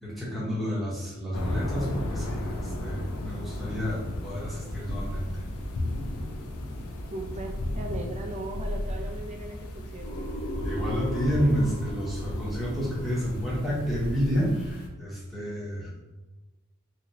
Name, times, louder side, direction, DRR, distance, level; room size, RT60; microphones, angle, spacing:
voice 1, 0.0-5.4 10.6-16.0, equal, ahead, -7 dB, 0.9 m, -30 dB
sound 1, 1.3-14.9, left 1 dB, 70° left, 0.5 m, -34 dB
voice 2, 7.1-10.3, right 1 dB, 30° right, 4 dB, 0.4 m, -38 dB
sound 2, 10.0-14.7, equal, 90° left, 1.4 m, -39 dB
2.9 x 2.8 x 2.7 m, 1.1 s
head